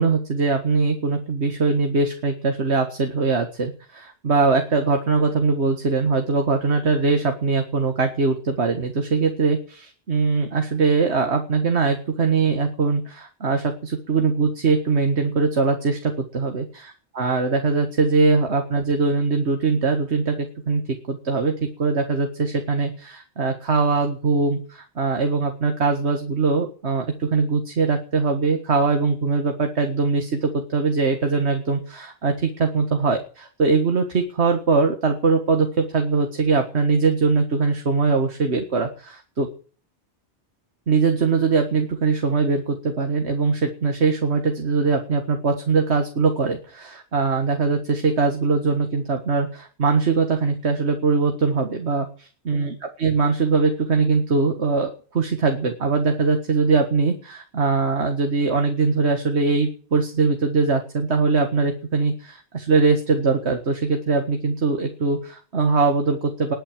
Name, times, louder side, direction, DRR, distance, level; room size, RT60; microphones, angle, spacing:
voice 1, 0.0-20.8 21.1-39.5 40.9-66.5, right 4 dB, 70° right, 5 dB, 2.0 m, -21 dB
20.0 x 8.0 x 7.6 m, 0.41 s
omnidirectional pair, 1.2 m